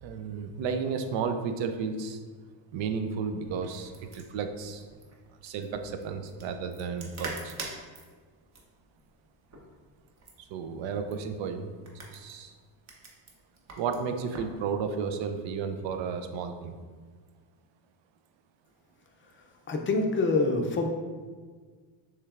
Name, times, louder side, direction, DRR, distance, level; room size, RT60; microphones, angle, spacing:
voice 1, 0.0-2.2 2.7-4.8 5.4-7.5 10.4-11.7 11.9-12.5 13.8-16.8, right 5 dB, 75° right, 7 dB, 0.6 m, -33 dB
sound 1, 3.4-14.6, right 2 dB, 35° right, 0.8 m, -46 dB
voice 2, 19.7-20.9, left 3 dB, 25° left, 3 dB, 0.5 m, -25 dB
6.4 x 3.2 x 2.4 m, 1.5 s
cardioid pair, 130°, 46 cm